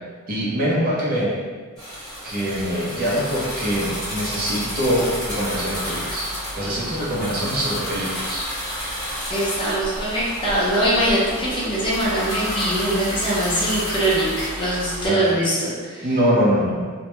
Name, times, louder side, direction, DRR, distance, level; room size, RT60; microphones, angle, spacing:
voice 1, 0.3-1.4 2.2-6.3 6.5-8.5 15.0-15.4 16.0-16.9, equal, 45° right, -7 dB, 0.6 m, -23 dB
sound 1, 1.8-15.1, equal, ahead, 1.0 m, -30 dB
voice 2, 9.3-16.1, right 1 dB, 25° left, -8 dB, 0.6 m, -22 dB
2.2 x 2.1 x 2.9 m, 1.5 s
head